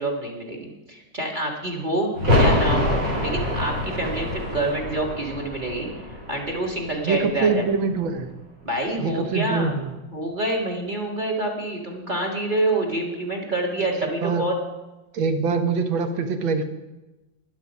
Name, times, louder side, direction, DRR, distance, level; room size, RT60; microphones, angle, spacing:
voice 1, 0.0-5.9 6.3-7.6 8.6-9.7 10.1-14.6, right 1 dB, 25° right, 1 dB, 1.8 m, -27 dB
sound 1, 2.1-7.7 8.0-8.1, left 1 dB, 65° right, 3.2 m, -25 dB
voice 2, 7.0-8.3 9.0-10.0 13.9-14.5 15.1-16.6, right 4 dB, 90° right, 8 dB, 1.8 m, -24 dB
12.0 x 10.5 x 5.3 m, 1.1 s
omnidirectional pair, 2.1 m